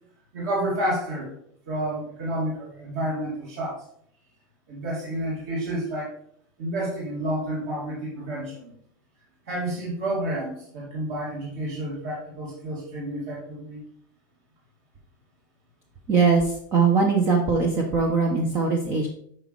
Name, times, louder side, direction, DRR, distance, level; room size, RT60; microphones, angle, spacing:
voice 1, 0.3-1.3 1.7-3.8 4.7-6.1 6.6-8.7 9.5-13.8, right 1 dB, 50° right, -6 dB, 2.3 m, -30 dB
voice 2, 16.1-19.1, right 4 dB, 20° right, 1 dB, 0.6 m, -21 dB
8.7 x 5.1 x 3.2 m, 0.67 s
supercardioid pair, 175°, 11 cm